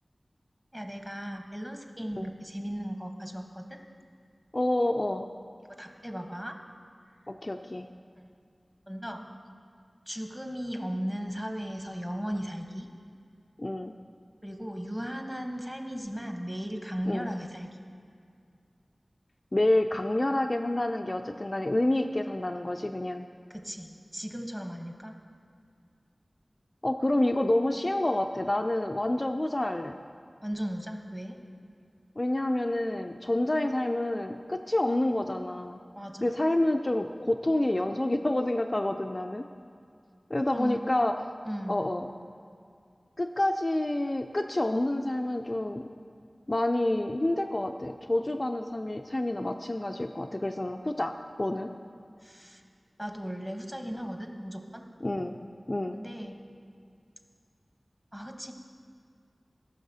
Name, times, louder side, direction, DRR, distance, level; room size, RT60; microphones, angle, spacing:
voice 1, 0.7-3.8 5.8-6.5 8.2-8.3 8.9-9.3 10.1-12.9 14.4-17.9 23.5-25.2 30.4-31.4 35.9-36.3 40.5-40.8 41.4-41.8 52.2-52.6 53.0-54.8 55.9-56.4 58.1-58.5, equal, 15° right, 3 dB, 1.0 m, -36 dB
voice 2, 4.5-5.3 7.3-7.9 13.6-13.9 17.1-17.3 19.5-23.3 26.8-30.0 32.2-35.8 36.2-39.5 40.3-41.2 41.7-42.1 43.2-45.8 46.5-51.7 55.0-55.4 55.7-56.0, left 1 dB, 40° left, 5 dB, 0.3 m, -28 dB
15.0 x 6.0 x 2.7 m, 2.3 s
wide cardioid pair, 40°, 0 cm